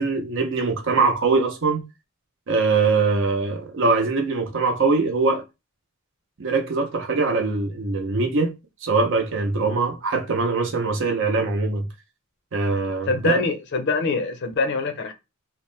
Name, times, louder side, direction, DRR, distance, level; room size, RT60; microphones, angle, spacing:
voice 1, 0.0-1.8 2.5-5.4 6.4-8.5 8.8-11.9 12.5-13.4, right 4 dB, 60° right, 0.7 m, -22 dB
voice 2, 13.1-15.1, left 3 dB, 55° left, 0.5 m, -24 dB
2.8 x 2.0 x 3.2 m
head